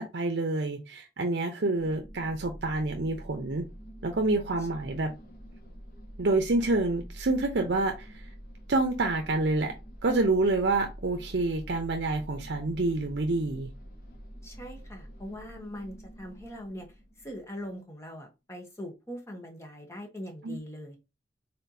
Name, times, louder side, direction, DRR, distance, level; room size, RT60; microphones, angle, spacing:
voice 1, 0.0-3.6 4.0-5.1 6.2-8.3 8.7-9.7 10.0-13.7 20.4-20.6, right 2 dB, 70° right, 0.6 m, -27 dB
sound 1, 1.7-17.7, equal, 55° left, 1.2 m, -46 dB
voice 2, 14.4-16.9 17.2-21.0, equal, 15° left, 1.1 m, -41 dB
4.3 x 3.7 x 2.7 m
head